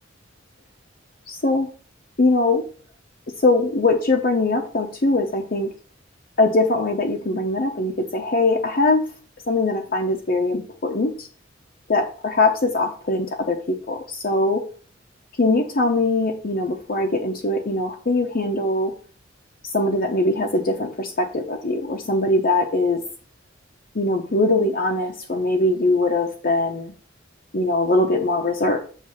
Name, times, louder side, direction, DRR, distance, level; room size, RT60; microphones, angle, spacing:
voice 1, 1.3-1.7 2.2-2.6 3.4-5.7 6.4-9.0 9.5-11.3 11.9-14.6 15.4-18.9 19.7-23.0 23.9-26.9 27.5-28.8, left 2 dB, 45° left, 1 dB, 0.8 m, -21 dB
7.4 x 3.3 x 6.3 m, 0.40 s
head